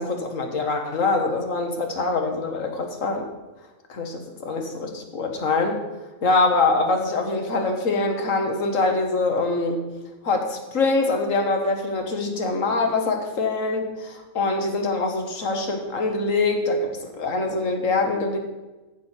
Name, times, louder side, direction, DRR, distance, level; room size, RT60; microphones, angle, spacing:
voice 1, 0.0-3.2 3.9-5.8 6.2-9.9 10.2-18.4, left 3 dB, 70° left, 3 dB, 1.7 m, -24 dB
14.5 x 6.4 x 4.4 m, 1.1 s
omnidirectional pair, 1.4 m